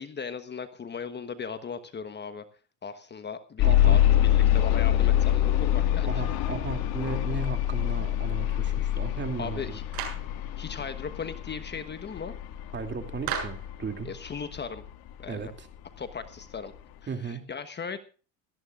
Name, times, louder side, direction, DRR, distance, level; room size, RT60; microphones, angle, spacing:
voice 1, 0.0-2.4 2.8-6.2 9.3-9.8 10.6-12.3 14.0-14.8 15.2-15.5 16.0-16.7 17.0-18.0, left 6 dB, 25° left, 10 dB, 1.2 m, -37 dB
sound 1, 3.6-15.5 16.2-16.3 16.8-16.9, left 12 dB, 65° left, 2.1 m, -25 dB
voice 2, 3.6-4.0 6.1-9.8 12.7-14.1 15.3-15.7 17.1-17.4, right 5 dB, 25° right, 6 dB, 2.7 m, -35 dB
Clapping, 9.9-10.3 13.3-13.7, right 8 dB, 60° right, 7.1 m, -33 dB
18.5 x 14.0 x 2.5 m, 0.36 s
supercardioid pair, 110°, 41 cm